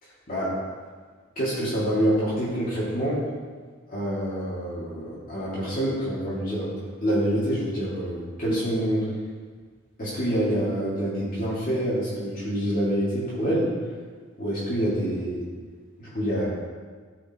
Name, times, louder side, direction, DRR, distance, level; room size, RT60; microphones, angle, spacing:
voice 1, 0.0-0.6 1.4-3.2 3.9-6.7 7.0-9.1 10.0-13.7 14.4-15.5 16.0-16.5, equal, 45° left, -9 dB, 2.3 m, -26 dB
14.5 x 5.6 x 3.0 m, 1.5 s
head